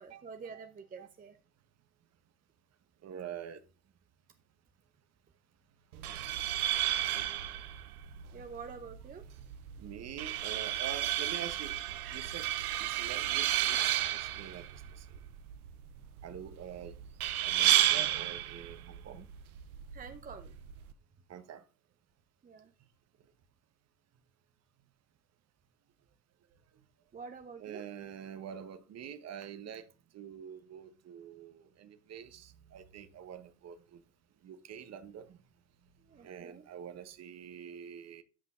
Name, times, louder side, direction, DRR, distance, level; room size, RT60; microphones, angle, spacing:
voice 1, 0.0-1.4 8.3-9.3 19.9-20.5 22.4-22.7 27.1-27.8 36.0-36.6, right 5 dB, 20° right, 0.7 m, -47 dB
voice 2, 3.0-3.6 8.2-8.5 9.8-11.8 12.1-12.5 12.8-15.2 16.2-19.3 21.3-21.6 27.6-34.0 34.4-35.4 36.2-38.2, right 8 dB, 35° right, 1.1 m, -46 dB
sound 1, 5.9-20.9, right 12 dB, 75° right, 0.8 m, -33 dB
13.0 x 5.6 x 2.4 m
figure-of-eight pair, 70°, 44 cm